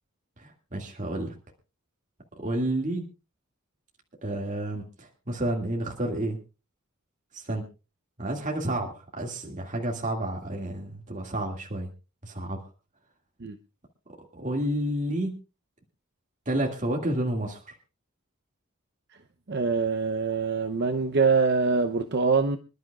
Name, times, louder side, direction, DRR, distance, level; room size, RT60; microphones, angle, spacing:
voice 1, 0.4-1.3 2.4-3.0 4.2-6.4 7.3-7.6 8.2-11.9 12.2-12.6 14.3-15.3 16.5-17.6, right 1 dB, 35° right, 0 dB, 2.1 m, -30 dB
voice 2, 19.5-22.6, right 4 dB, 55° right, 7 dB, 0.7 m, -24 dB
26.5 x 11.5 x 2.4 m, 0.30 s
head